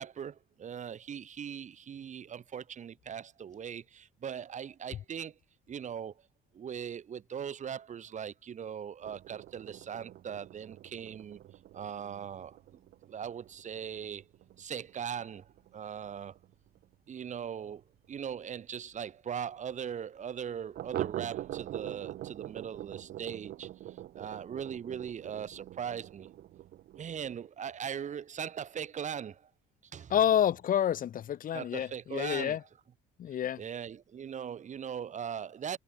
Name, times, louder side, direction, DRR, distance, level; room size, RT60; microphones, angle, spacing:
voice 1, 0.0-5.4 5.7-6.1 6.5-11.4 11.7-12.8 13.1-14.3 14.6-16.4 17.1-26.3 27.0-29.5 29.9-30.1 31.5-32.6 33.6-35.8, right 8 dB, 45° right, 7.2 m, -40 dB
sound 1, 9.0-18.3 18.6-18.7 19.0-19.1 19.5-19.6 20.7-27.5, right 13 dB, 70° right, 5.6 m, -44 dB
voice 2, 30.1-32.6 33.2-33.6, left 10 dB, 55° left, 3.2 m, -28 dB
cardioid pair, 110°, 17 cm